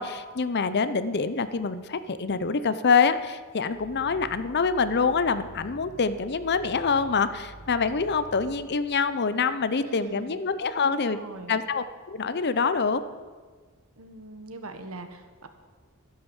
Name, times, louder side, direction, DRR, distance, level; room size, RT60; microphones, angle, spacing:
voice 1, 0.0-11.2 11.5-13.0, left 5 dB, 50° left, 13 dB, 0.7 m, -25 dB
Growling, 3.7-8.6, right 2 dB, 40° right, 1.3 m, -47 dB
voice 2, 9.8-10.4 10.8-11.6 14.0-15.5, right 2 dB, 65° right, 8 dB, 1.4 m, -41 dB
12.5 x 10.5 x 7.3 m, 1.5 s
head